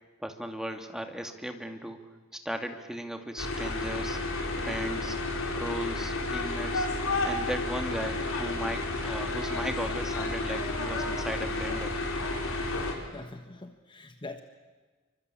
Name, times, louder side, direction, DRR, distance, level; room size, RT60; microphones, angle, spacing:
voice 1, 0.2-2.0 2.4-4.2 4.6-5.2 5.5-6.9 7.2-12.0, equal, 5° right, 5 dB, 2.5 m, -36 dB
sound 1, 3.4-12.9, left 2 dB, 75° left, 5.0 m, -31 dB
voice 2, 13.1-14.4, left 2 dB, 25° left, 7 dB, 1.4 m, -43 dB
27.5 x 25.0 x 8.6 m, 1.3 s
head